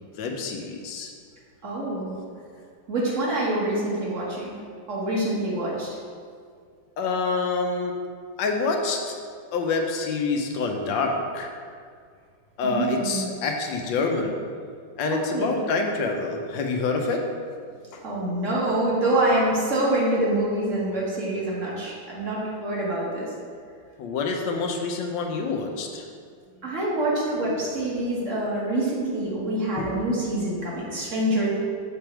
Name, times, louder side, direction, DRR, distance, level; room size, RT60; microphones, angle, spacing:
voice 1, 0.2-1.1 7.0-7.9 8.4-9.1 9.5-11.5 12.6-14.4 15.0-17.2 17.9-18.0 24.0-26.0 29.8-29.9, left 3 dB, 70° left, 3 dB, 1.3 m, -27 dB
voice 2, 1.6-2.2 2.9-4.6 4.9-5.9 12.6-13.3 15.1-15.6 18.0-23.3 26.6-31.6, right 1 dB, 45° right, -5 dB, 1.4 m, -26 dB
6.9 x 3.5 x 4.4 m, 2.1 s
omnidirectional pair, 2.2 m